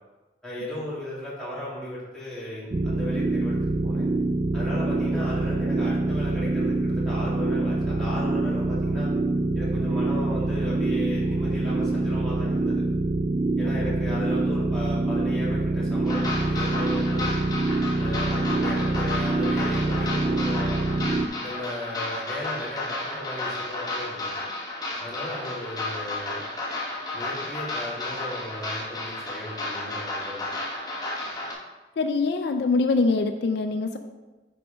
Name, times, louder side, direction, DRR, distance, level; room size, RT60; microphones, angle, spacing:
voice 1, 0.4-4.1 4.5-9.1 9.5-12.8 13.6-17.3 18.0-20.8 21.4-24.4 25.0-26.4 27.1-30.5, left 1 dB, 5° left, -9 dB, 2.2 m, -36 dB
sound 1, 2.7-21.3, right 2 dB, 25° right, 0.3 m, -25 dB
sound 2, 16.1-31.5, left 2 dB, 25° left, 1.0 m, -33 dB
voice 2, 32.0-34.0, left 3 dB, 65° left, 6 dB, 0.4 m, -24 dB
6.8 x 5.1 x 3.5 m, 1.2 s
head